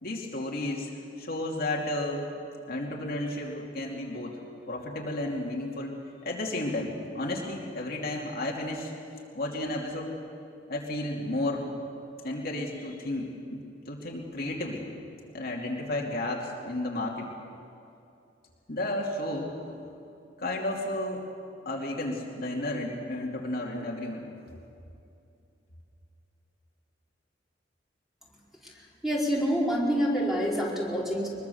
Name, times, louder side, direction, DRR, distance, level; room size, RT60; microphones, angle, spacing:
voice 1, 0.0-0.9 1.2-2.3 2.7-4.4 4.7-5.9 6.2-8.9 9.3-10.1 10.7-11.6 12.2-13.6 13.9-14.9 15.3-17.3 18.7-19.5 20.4-21.2 21.6-24.3, left 1 dB, 55° left, -2 dB, 2.7 m, -32 dB
voice 2, 29.0-31.3, equal, ahead, -5 dB, 4.7 m, -27 dB
23.0 x 22.0 x 7.1 m, 2.7 s
head